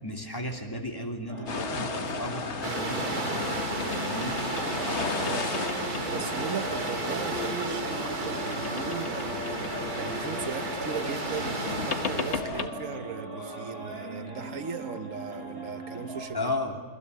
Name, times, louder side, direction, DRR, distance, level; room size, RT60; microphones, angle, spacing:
voice 1, 0.0-4.4 16.3-16.8, left 1 dB, 15° left, 2.8 m, -35 dB
sound 1, 1.3-16.2, equal, 40° right, 8.1 m, -38 dB
sound 2, 1.5-12.7, left 5 dB, 50° left, 1.5 m, -35 dB
sound 3, 2.6-12.4, right 3 dB, 80° right, 3.0 m, -33 dB
voice 2, 5.1-5.6 6.1-9.5 10.0-16.5, right 6 dB, 60° right, 1.4 m, -38 dB
28.5 x 21.0 x 8.2 m
omnidirectional pair, 1.6 m